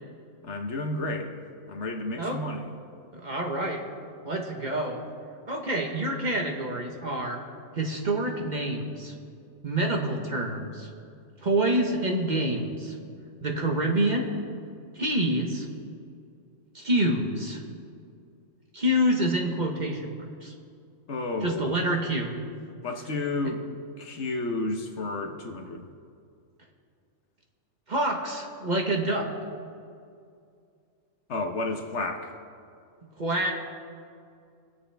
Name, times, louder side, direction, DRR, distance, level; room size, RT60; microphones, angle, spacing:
voice 1, 0.4-1.3 1.7-2.7 21.1-21.8 22.8-23.6 24.0-25.9 31.3-32.3, left 2 dB, 60° left, 4 dB, 1.2 m, -31 dB
voice 2, 3.1-3.8 4.2-5.0 5.5-7.4 7.7-9.1 9.6-10.9 11.4-13.0 13.4-14.3 14.9-15.7 16.7-17.6 18.7-20.5 21.4-22.3 27.9-29.3 33.2-33.5, right 1 dB, 35° right, 1 dB, 1.2 m, -27 dB
22.5 x 7.8 x 3.4 m, 2.4 s
omnidirectional pair, 1.4 m